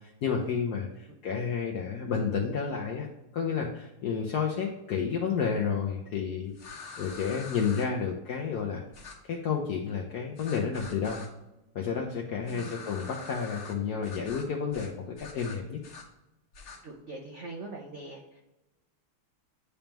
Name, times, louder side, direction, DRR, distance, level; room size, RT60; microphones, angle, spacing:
voice 1, 0.2-3.1 3.3-8.8 9.2-11.2 11.7-15.0 15.3-15.8, left 6 dB, 70° left, 1 dB, 0.9 m, -31 dB
sound 1, 6.5-7.8 8.9-9.1 10.4-11.3 12.4-13.7 14.0-14.4 14.7-14.9 15.1-16.0 16.5-16.8, left 4 dB, 55° left, 1.9 m, -44 dB
voice 2, 16.8-18.4, right 2 dB, 70° right, -1 dB, 0.6 m, -42 dB
9.9 x 3.5 x 2.9 m, 0.97 s
omnidirectional pair, 2.4 m